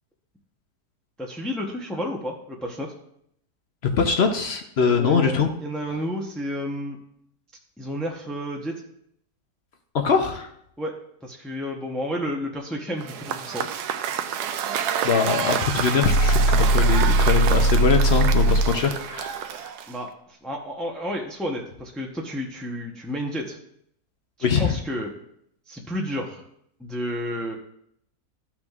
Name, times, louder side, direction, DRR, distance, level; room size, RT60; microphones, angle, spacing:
voice 1, 1.2-2.9 4.9-7.0 7.8-8.8 10.8-11.0 11.2-13.7 19.9-23.6 24.4-25.1 25.7-26.4 26.8-27.6, equal, ahead, -1 dB, 0.4 m, -31 dB
voice 2, 4.0-5.5 9.9-10.5 15.0-19.7 24.4-24.8, left 5 dB, 55° left, 5 dB, 0.7 m, -22 dB
Cheering / Applause / Crowd, 13.0-20.1, right 9 dB, 85° right, 1.1 m, -29 dB
sound 1, 16.0-18.8, right 1 dB, 85° left, 2.7 m, -19 dB
13.5 x 6.0 x 2.4 m, 0.72 s
omnidirectional pair, 1.7 m